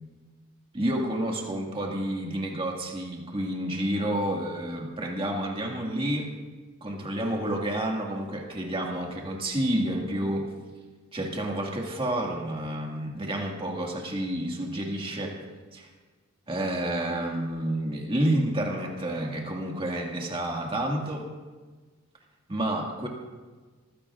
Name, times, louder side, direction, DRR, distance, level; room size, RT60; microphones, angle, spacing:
voice 1, 0.7-6.3 6.8-10.5 11.1-15.4 15.7-15.9 16.5-21.3 22.5-23.1, right 1 dB, 25° right, 0 dB, 1.8 m, -29 dB
24.0 x 15.5 x 2.4 m, 1.4 s
head